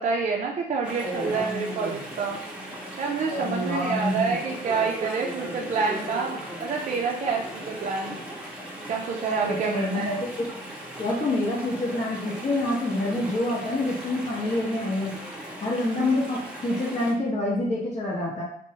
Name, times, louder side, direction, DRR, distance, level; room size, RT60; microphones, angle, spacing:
voice 1, 0.0-2.4 3.0-8.2 8.9-10.1, right 5 dB, 45° right, 0 dB, 0.4 m, -28 dB
Chatter / Stream, 0.8-17.1, equal, 5° right, 0.7 m, -37 dB
voice 2, 3.3-4.4 9.4-10.5 11.0-15.2 15.6-18.4, left 1 dB, 40° left, -5 dB, 0.7 m, -27 dB
2.6 x 2.1 x 2.7 m, 0.66 s
cardioid pair, 75°, 17 cm